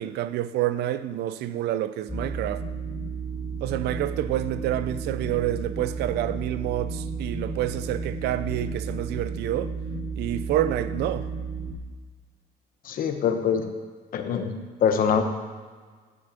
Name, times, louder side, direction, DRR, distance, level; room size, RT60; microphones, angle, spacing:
voice 1, 0.0-2.6 3.6-9.7 10.2-11.3, right 12 dB, 75° right, 0.5 m, -28 dB
sound 1, 2.1-11.7, right 4 dB, 10° right, 3.0 m, -33 dB
voice 2, 12.8-13.7 14.1-14.5 14.8-15.2, left 7 dB, 55° left, 1.1 m, -23 dB
11.5 x 5.7 x 5.2 m
cardioid pair, 110°, 17 cm